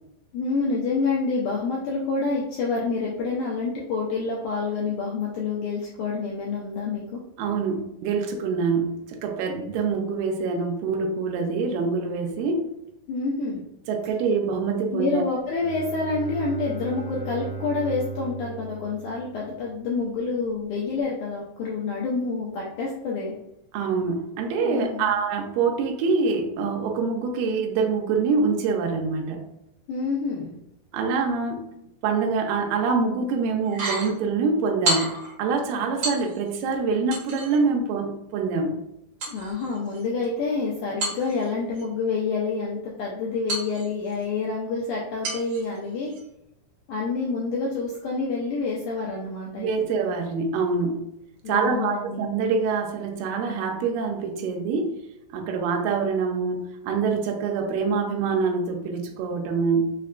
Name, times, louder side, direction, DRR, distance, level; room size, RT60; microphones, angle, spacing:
voice 1, 0.3-7.2 13.1-13.6 14.9-23.3 24.6-25.1 29.9-30.5 39.3-46.1 46.9-49.9 51.4-52.3, left 4 dB, 80° left, -4 dB, 1.8 m, -28 dB
voice 2, 7.4-12.7 13.9-15.2 23.7-29.4 30.9-31.7 32.0-38.8 49.6-51.1 51.5-55.0 55.3-59.9, right 4 dB, 80° right, 2 dB, 2.2 m, -25 dB
Bowed string instrument, 15.5-20.0, right 5 dB, 50° left, 1.2 m, -37 dB
sound 1, 33.6-34.1 34.8-35.3 36.0-36.6 37.1-37.6 39.2-40.2 41.0-41.8 43.5-44.2 45.2-45.7 46.1-46.2, right 2 dB, 55° right, 2.1 m, -30 dB
5.6 x 2.2 x 2.4 m, 0.82 s
omnidirectional pair, 4.1 m